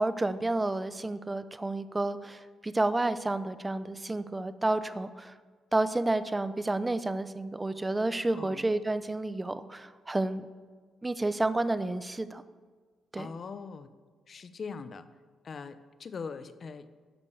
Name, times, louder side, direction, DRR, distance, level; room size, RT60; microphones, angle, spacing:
voice 1, 0.0-5.3 5.7-10.4 11.0-12.4 13.1-13.3, right 2 dB, 15° right, 13 dB, 0.6 m, -30 dB
voice 2, 8.3-8.6 13.2-13.9 14.3-15.0 15.4-16.9, left 5 dB, 45° left, 12 dB, 0.8 m, -41 dB
13.0 x 5.3 x 7.1 m, 1.5 s
cardioid pair, 90°, 0 cm